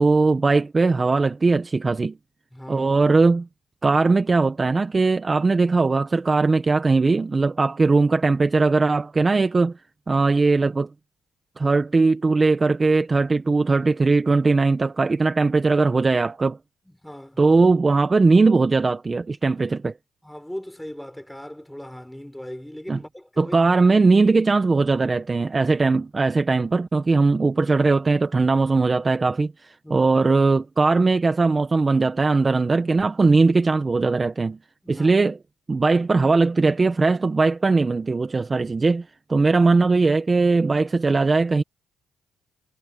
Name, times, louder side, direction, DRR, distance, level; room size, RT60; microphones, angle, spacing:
voice 1, 0.0-2.2 2.7-3.5 3.8-9.8 10.1-10.9 11.6-16.6 17.4-19.9 22.9-23.0 23.4-34.6 34.9-35.4 35.7-41.6, right 3 dB, 30° right, 1.3 m, -19 dB
voice 2, 2.5-2.9 16.8-17.4 20.2-23.6 29.8-30.1 34.8-35.2, equal, 5° left, 6.0 m, -38 dB
cardioid pair, 90°, 0 cm